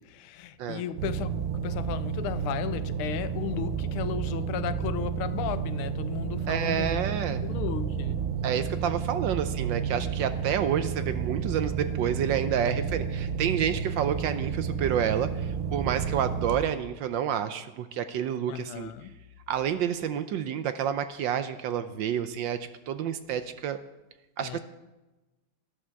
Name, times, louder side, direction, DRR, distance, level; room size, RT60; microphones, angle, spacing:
voice 1, 0.0-8.3 18.5-19.1 24.4-24.6, left 11 dB, 85° left, 1.5 m, -35 dB
sound 1, 1.0-16.6, right 7 dB, 90° right, 1.8 m, -31 dB
voice 2, 6.5-7.4 8.4-18.9 19.5-22.6 22.9-23.8 24.4-24.6, right 9 dB, 75° right, 1.2 m, -29 dB
13.0 x 11.0 x 4.6 m
omnidirectional pair, 2.3 m